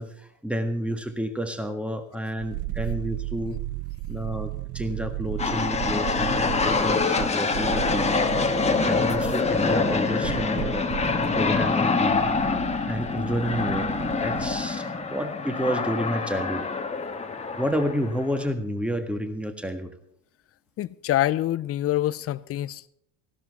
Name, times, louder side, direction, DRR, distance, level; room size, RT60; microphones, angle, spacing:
voice 1, 0.0-3.6 4.1-8.2 8.8-10.8 11.3-12.3 12.9-16.7 17.6-19.9, equal, 5° right, 1.6 m, -30 dB
sound 1, 2.4-14.8 15.0-15.1, right 17 dB, 50° right, 0.5 m, -35 dB
sound 2, 5.4-18.5, left 4 dB, 15° left, 1.4 m, -25 dB
voice 2, 20.8-22.9, left 13 dB, 35° left, 0.6 m, -26 dB
15.5 x 12.5 x 4.2 m
supercardioid pair, 90°, 39 cm